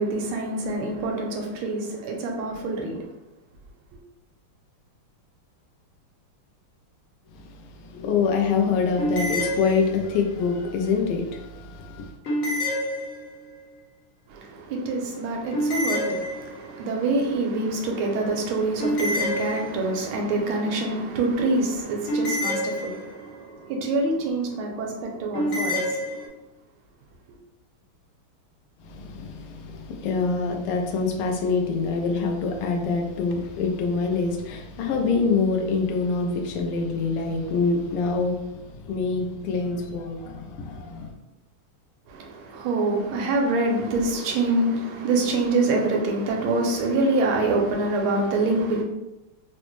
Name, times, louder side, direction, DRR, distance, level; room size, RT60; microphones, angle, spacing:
voice 1, 0.0-3.1 14.3-26.3 42.1-48.8, right 2 dB, 75° right, 1.4 m, -26 dB
voice 2, 7.3-12.2 28.8-41.2, left 4 dB, 85° left, 1.5 m, -25 dB
sound 1, 9.0-10.3 12.2-13.6 15.5-16.8 18.8-20.1 22.1-23.4 25.3-26.3, left 1 dB, 65° left, 0.8 m, -28 dB
4.0 x 2.1 x 3.0 m
omnidirectional pair, 2.4 m